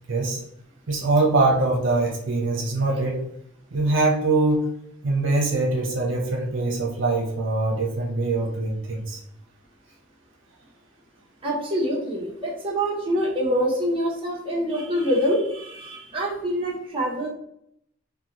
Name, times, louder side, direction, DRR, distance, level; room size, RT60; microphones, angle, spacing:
voice 1, 0.1-0.4 0.9-3.2 3.7-4.7 5.0-9.2, right 2 dB, 70° right, -1 dB, 0.7 m, -23 dB
voice 2, 11.4-17.3, equal, 25° right, -5 dB, 0.8 m, -25 dB
3.9 x 2.2 x 2.9 m, 0.73 s
head